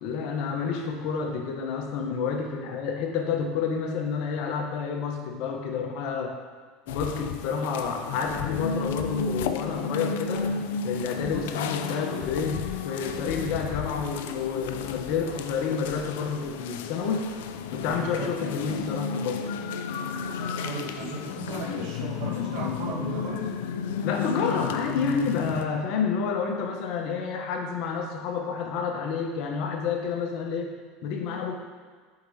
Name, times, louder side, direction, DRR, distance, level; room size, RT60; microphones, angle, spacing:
voice 1, 0.0-6.3 6.9-17.3 17.7-19.4 24.0-30.7 31.0-31.6, left 5 dB, 65° left, 3 dB, 0.9 m, -29 dB
sound 1, 6.9-25.7, left 6 dB, 80° left, 0.3 m, -32 dB
voice 2, 17.9-18.3 20.4-23.5, right 3 dB, 70° right, -3 dB, 1.4 m, -36 dB
7.8 x 4.9 x 2.8 m, 1.5 s
supercardioid pair, 100°, 0 cm